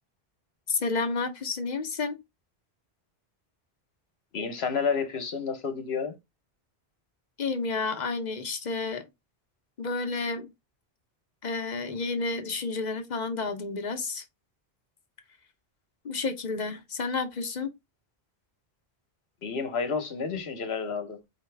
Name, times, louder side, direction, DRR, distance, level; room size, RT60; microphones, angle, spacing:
voice 1, 0.7-2.2 7.4-9.1 9.8-10.5 11.4-14.2 16.0-17.7, left 4 dB, 45° left, 0.9 m, -30 dB
voice 2, 4.3-6.1 19.4-21.2, left 5 dB, 75° left, 1.2 m, -30 dB
4.8 x 2.9 x 3.3 m
omnidirectional pair, 1.1 m